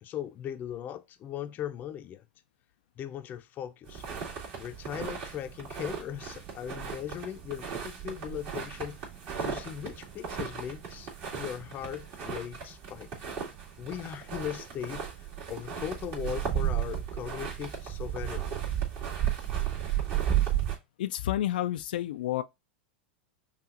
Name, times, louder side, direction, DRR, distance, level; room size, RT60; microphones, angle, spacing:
voice 1, 0.0-2.3 3.0-4.0 4.6-9.1 9.4-13.3 13.8-18.4, left 10 dB, 35° left, 0.6 m, -39 dB
sound 1, 3.9-20.8, right 9 dB, 45° right, 2.2 m, -34 dB
voice 2, 21.0-22.4, left 13 dB, 75° left, 0.3 m, -30 dB
5.6 x 2.4 x 2.5 m
hypercardioid pair, 110°, 5 cm